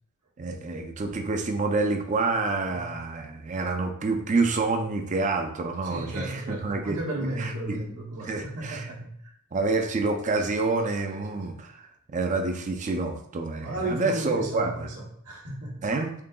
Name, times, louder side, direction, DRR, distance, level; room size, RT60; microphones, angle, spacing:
voice 1, 0.4-7.8 8.2-8.9 9.5-14.9 15.8-16.1, right 3 dB, 35° right, 4 dB, 0.4 m, -28 dB
voice 2, 5.8-9.2 11.1-11.4 13.6-15.9, right 1 dB, 80° right, -5 dB, 1.1 m, -34 dB
3.7 x 3.6 x 2.3 m, 0.68 s
head